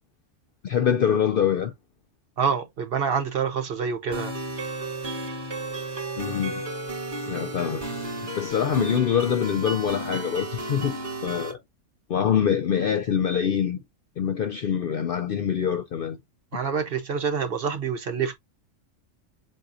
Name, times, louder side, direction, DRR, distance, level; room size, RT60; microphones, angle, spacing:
voice 1, 0.6-1.7 6.2-6.6 7.3-7.8 8.2-11.6 12.1-13.8 14.2-16.2, left 8 dB, 65° left, 0.5 m, -25 dB
voice 2, 2.4-4.3 16.5-18.3, right 6 dB, 55° right, 0.8 m, -26 dB
sound 1, 4.1-11.5, right 2 dB, 40° right, 2.3 m, -33 dB
7.4 x 2.7 x 2.5 m
omnidirectional pair, 1.4 m